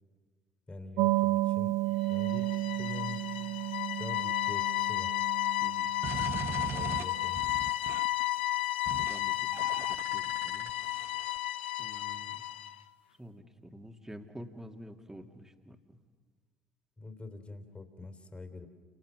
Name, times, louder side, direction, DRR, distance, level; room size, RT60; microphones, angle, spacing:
voice 1, 0.7-1.8 2.1-3.3 4.0-5.2 6.1-7.5 17.0-18.7, left 3 dB, 20° left, 7 dB, 3.4 m, -44 dB
sound 1, 1.0-7.2, right 18 dB, 65° right, 0.7 m, -33 dB
sound 2, 2.0-12.8, left 16 dB, 85° left, 0.7 m, -33 dB
sound 3, 6.0-8.2 8.9-9.2 9.5-11.4, right 7 dB, 45° right, 0.9 m, -40 dB
voice 2, 8.9-10.7 11.8-12.4 13.2-16.0, equal, 10° right, 4 dB, 2.5 m, -49 dB
30.0 x 26.5 x 6.3 m, 1.5 s
hypercardioid pair, 60°, 6 cm